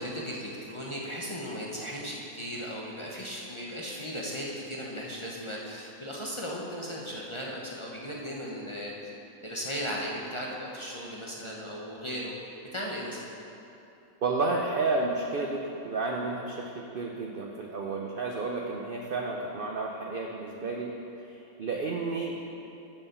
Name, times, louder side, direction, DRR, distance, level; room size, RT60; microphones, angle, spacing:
voice 1, 0.0-8.9 9.4-12.3 12.7-13.2, equal, 25° left, -4 dB, 0.7 m, -36 dB
voice 2, 14.2-20.9 21.6-22.4, right 3 dB, 60° right, 0 dB, 0.5 m, -31 dB
7.1 x 6.4 x 6.8 m, 2.9 s
omnidirectional pair, 1.6 m